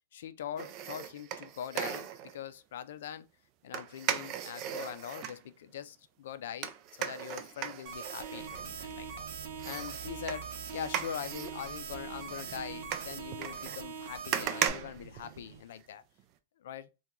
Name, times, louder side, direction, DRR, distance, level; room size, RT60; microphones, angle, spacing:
voice 1, 0.1-3.3 3.6-9.3 9.6-10.5 10.7-16.0 16.6-16.9, left 9 dB, 70° left, 0.3 m, -42 dB
sound 1, 0.6-2.4 3.7-5.4 6.6-9.1 9.6-15.8 16.2-16.3, right 10 dB, 35° right, 0.3 m, -38 dB
sound 2, 7.9-14.7, right 5 dB, 50° right, 0.7 m, -42 dB
sound 3, 8.3-15.6, right 7 dB, 85° right, 0.5 m, -50 dB
2.9 x 2.2 x 3.6 m
supercardioid pair, 155°, 0 cm